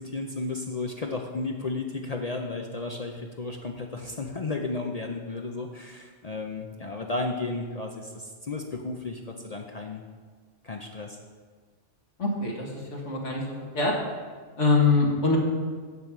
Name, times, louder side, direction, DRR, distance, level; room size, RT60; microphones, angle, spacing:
voice 1, 0.0-10.0 10.6-11.2, left 3 dB, 40° left, 2 dB, 0.6 m, -33 dB
voice 2, 12.2-14.0 14.6-15.4, left 3 dB, 90° left, -1 dB, 2.0 m, -24 dB
8.3 x 6.9 x 6.0 m, 1.5 s
omnidirectional pair, 1.2 m